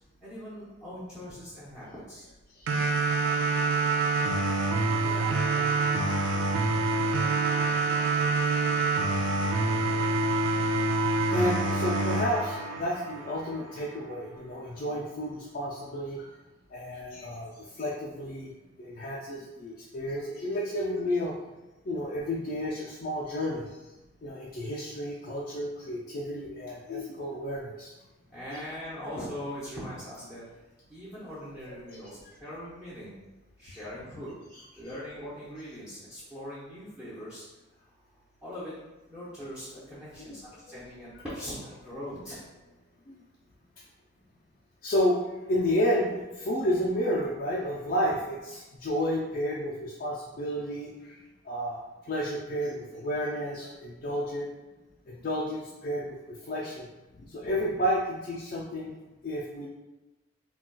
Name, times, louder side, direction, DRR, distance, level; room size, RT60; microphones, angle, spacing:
voice 1, 0.2-2.3 3.5-3.6 28.3-30.4 30.9-33.1 33.6-34.3 34.8-37.4 38.4-38.7 39.1-42.4, equal, 5° right, -10 dB, 0.6 m, -41 dB
sound 1, 2.7-13.6, right 3 dB, 75° right, 0.3 m, -26 dB
voice 2, 4.9-5.8 6.6-6.9 7.2-7.3 9.0-9.2 9.5-9.6 10.0-10.1 11.2-16.3 16.7-18.5 18.8-21.3 21.8-23.9 24.2-27.9 28.5-28.6 31.9-32.0 33.7-33.8 34.5-34.6 41.1-41.2 43.1-43.2 44.8-45.2 45.5-51.2 51.4-54.5 55.1-56.9 57.2-59.0 59.2-59.7, equal, 45° left, -4 dB, 0.3 m, -31 dB
3.9 x 2.2 x 2.2 m, 1.1 s
head